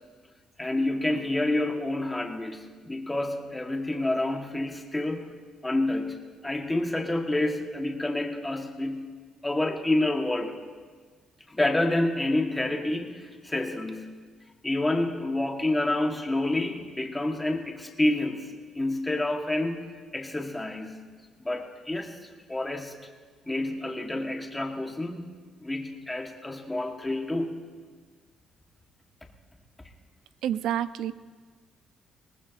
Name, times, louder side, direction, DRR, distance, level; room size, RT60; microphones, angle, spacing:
voice 1, 0.6-5.3 5.6-6.2 6.4-9.1 9.4-10.6 11.5-14.2 14.6-18.5 18.7-21.1 21.4-22.1 22.5-23.0 23.5-25.3 25.6-27.7, left 1 dB, 10° left, 3 dB, 1.3 m, -28 dB
voice 2, 30.4-31.1, right 10 dB, 85° right, 14 dB, 0.4 m, -28 dB
20.0 x 18.5 x 2.6 m, 1.5 s
cardioid pair, 130°, 0 cm